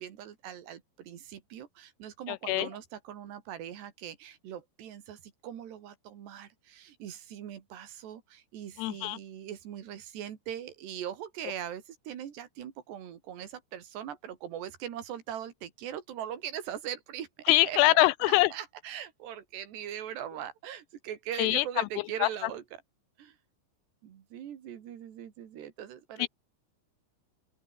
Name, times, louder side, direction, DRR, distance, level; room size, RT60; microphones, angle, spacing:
voice 1, 0.0-18.1 18.5-22.8 23.2-23.4 24.0-26.3, right 10 dB, 85° right, 4.5 m, -41 dB
voice 2, 2.3-2.7 8.8-9.2 17.5-18.5 21.4-21.6 22.2-22.3 26.2-26.3, left 19 dB, 85° left, 2.6 m, -23 dB
open air
omnidirectional pair, 4.7 m